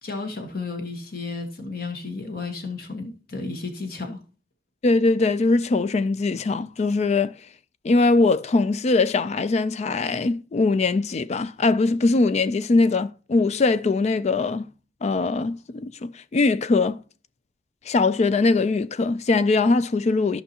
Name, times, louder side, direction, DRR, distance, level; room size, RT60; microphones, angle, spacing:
voice 1, 0.0-4.2, left 3 dB, 60° left, 1.3 m, -33 dB
voice 2, 4.8-7.4 7.8-14.7 15.0-17.0 17.9-20.4, left 3 dB, 40° left, 0.4 m, -21 dB
14.0 x 5.5 x 2.8 m
head